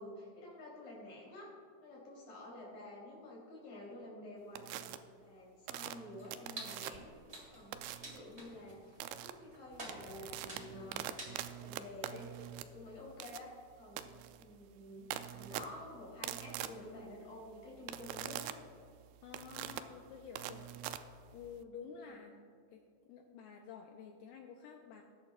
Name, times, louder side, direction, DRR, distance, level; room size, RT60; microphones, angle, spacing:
voice 1, 0.0-1.5 1.8-7.1 7.4-9.0 9.2-11.1 11.6-13.5 13.8-14.1 14.4-18.4 22.0-22.1, left 1 dB, 55° left, -5 dB, 4.5 m, -50 dB
sound 1, 4.6-5.0 5.7-7.2 7.7-8.2 9.0-9.3 9.7-21.6, right 12 dB, 90° right, 2.1 m, -44 dB
sound 2, 6.2-11.4, right 1 dB, 25° right, 1.5 m, -51 dB
voice 2, 19.2-21.1 21.3-22.8 23.1-25.0, left 6 dB, 90° left, 2 dB, 2.2 m, -51 dB
19.5 x 11.0 x 2.3 m, 2.3 s
omnidirectional pair, 4.9 m